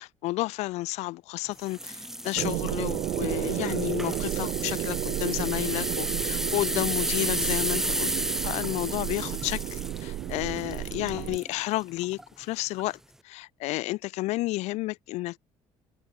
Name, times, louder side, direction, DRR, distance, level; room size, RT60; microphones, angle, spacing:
voice 1, 0.0-8.1 8.4-13.0 13.2-15.4, left 19 dB, 85° left, 1.7 m, -31 dB
sound 1, 1.6-11.5 12.0-12.2 12.8-12.9, right 1 dB, 5° right, 0.9 m, -33 dB
sound 2, 2.4-11.4, right 15 dB, 70° right, 4.1 m, -32 dB
cardioid pair, 130°, 11 cm